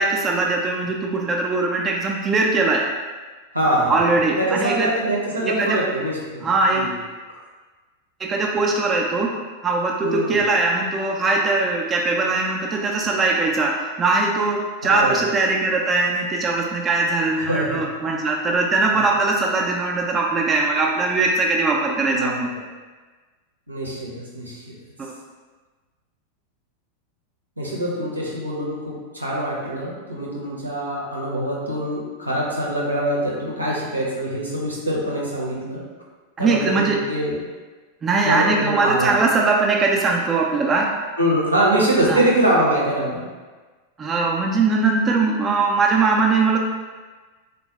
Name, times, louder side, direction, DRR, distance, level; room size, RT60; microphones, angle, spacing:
voice 1, 0.0-2.8 3.9-4.9 5.4-5.8 6.4-6.9 8.2-9.3 9.6-22.5 36.4-37.0 38.0-40.9 42.1-42.2 44.0-46.6, right 3 dB, 20° right, 0 dB, 0.3 m, -21 dB
voice 2, 3.5-4.0 4.4-6.9 10.0-10.4 14.8-15.2 17.5-17.8 18.9-19.0 22.1-22.5 23.7-24.6 27.6-35.8 36.4-37.4 38.2-39.1 41.2-43.2, right 1 dB, 85° right, -5 dB, 0.7 m, -24 dB
3.4 x 2.2 x 2.8 m, 1.3 s
figure-of-eight pair, 90°, 0 cm